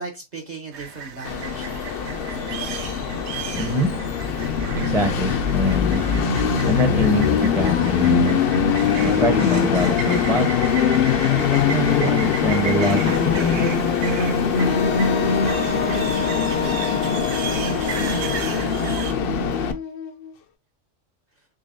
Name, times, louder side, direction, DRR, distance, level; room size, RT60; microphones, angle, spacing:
voice 1, 0.0-2.8, right 4 dB, 40° right, 0.8 m, -39 dB
sound 1, 0.7-19.1, right 6 dB, 65° right, 1.0 m, -34 dB
Train, 1.2-19.7, left 7 dB, 60° left, 0.7 m, -22 dB
voice 2, 3.5-3.9 4.7-6.1 6.6-8.4 9.0-10.5 11.2-13.7, equal, 5° right, 0.6 m, -24 dB
Wind instrument woodwind instrument, 14.6-20.3, left 5 dB, 80° left, 1.0 m, -29 dB
3.9 x 3.5 x 2.6 m
omnidirectional pair, 1.3 m